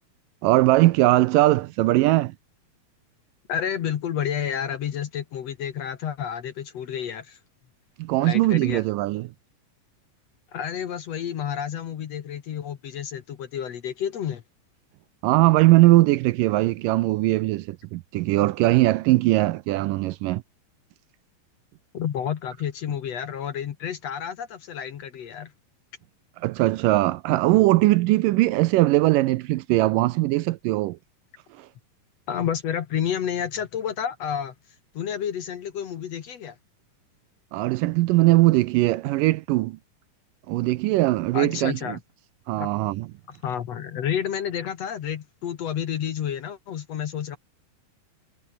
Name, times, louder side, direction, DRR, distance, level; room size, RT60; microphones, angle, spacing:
voice 1, 0.4-2.3 8.0-9.3 15.2-20.4 26.4-31.0 31.6-31.7 37.5-39.8 40.5-42.0 42.5-43.1, right 18 dB, 80° right, 2.1 m, -20 dB
voice 2, 3.5-7.4 8.2-8.8 10.5-14.4 21.9-25.5 32.3-34.5 34.9-36.6 41.3-42.0 42.6-42.7 43.3-47.4, left 9 dB, 55° left, 2.1 m, -30 dB
omnidirectional pair, 4.1 m